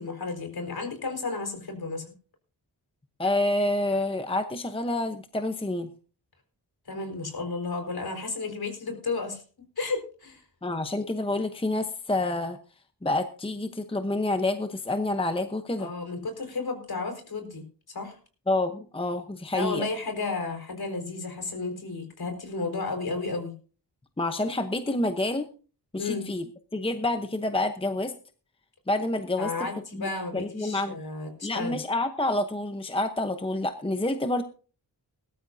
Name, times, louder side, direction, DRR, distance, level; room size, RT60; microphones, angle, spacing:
voice 1, 0.0-2.0 6.9-9.4 9.8-10.4 15.8-18.2 19.5-23.5 26.0-26.2 29.4-31.8, left 3 dB, 60° left, 5 dB, 4.7 m, -33 dB
voice 2, 3.2-5.9 10.6-12.6 13.0-15.9 18.5-19.9 24.2-25.5 25.9-26.4 26.7-28.1 28.9-29.5 29.9-31.0 31.4-34.4, left 2 dB, 15° left, 7 dB, 0.9 m, -28 dB
20.0 x 13.0 x 2.7 m, 0.38 s
wide cardioid pair, 145°, 42 cm